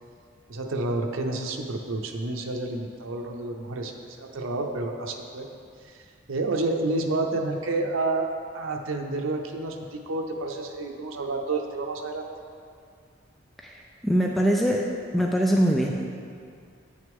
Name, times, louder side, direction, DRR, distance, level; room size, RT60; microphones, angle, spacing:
voice 1, 0.5-3.9 4.2-5.5 5.9-6.0 6.3-12.3, right 2 dB, 90° right, 3 dB, 0.7 m, -29 dB
voice 2, 14.0-14.9 15.1-16.1, equal, ahead, -1 dB, 0.4 m, -22 dB
8.5 x 6.4 x 3.6 m, 2.3 s
head